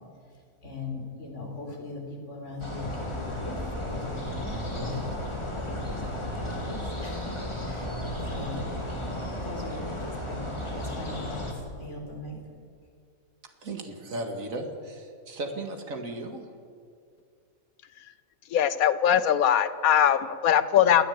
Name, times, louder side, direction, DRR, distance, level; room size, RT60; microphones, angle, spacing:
voice 1, 0.6-5.0 5.5-7.3 7.6-9.2 9.4-11.4 11.8-12.4, left 2 dB, 55° left, 1 dB, 4.3 m, -39 dB
sound 1, 2.6-11.5, left 1 dB, 20° left, 2.7 m, -34 dB
voice 2, 13.6-16.5, right 2 dB, 70° right, 4 dB, 2.4 m, -36 dB
voice 3, 18.5-21.0, left 9 dB, 80° left, 14 dB, 1.3 m, -21 dB
29.5 x 10.0 x 8.7 m, 2.3 s
omnidirectional pair, 1.5 m